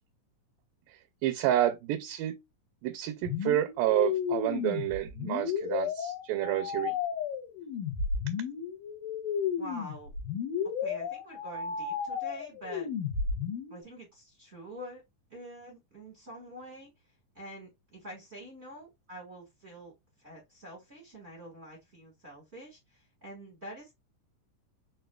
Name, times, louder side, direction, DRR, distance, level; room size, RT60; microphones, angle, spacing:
voice 1, 1.2-2.4 2.8-7.0, right 13 dB, 85° right, 2.2 m, -29 dB
sound 1, 3.2-13.8, left 7 dB, 80° left, 2.8 m, -33 dB
voice 2, 9.6-10.1 10.8-12.9 13.7-15.0 15.3-16.9 17.3-19.9 20.2-23.9, equal, 45° right, 0.8 m, -46 dB
6.2 x 2.5 x 2.2 m
omnidirectional pair, 3.9 m